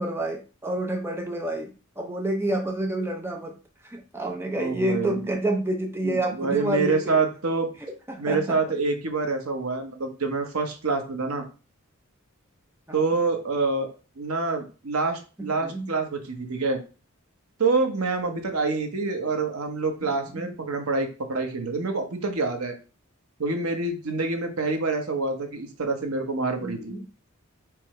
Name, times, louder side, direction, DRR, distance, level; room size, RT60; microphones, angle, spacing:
voice 1, 0.0-1.7 2.0-3.6 3.8-7.2 8.1-8.6 15.4-15.9 20.0-20.5 26.6-27.0, right 1 dB, 10° right, 2 dB, 0.6 m, -29 dB
voice 2, 4.6-5.3 6.0-7.7 8.2-11.4 12.9-13.9 14.2-16.8 17.6-22.8 23.4-26.9, right 3 dB, 85° right, 5 dB, 0.9 m, -26 dB
4.6 x 2.1 x 4.7 m, 0.34 s
head